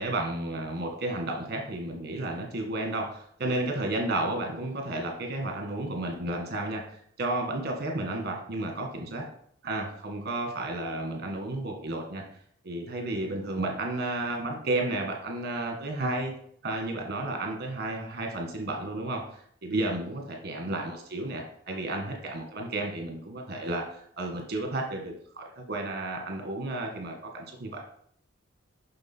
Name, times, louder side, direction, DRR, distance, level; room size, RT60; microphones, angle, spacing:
voice 1, 0.0-9.2 9.6-12.2 12.6-16.3 16.6-27.8, right 2 dB, 55° right, 2 dB, 1.6 m, -32 dB
7.6 x 5.8 x 4.5 m, 0.64 s
head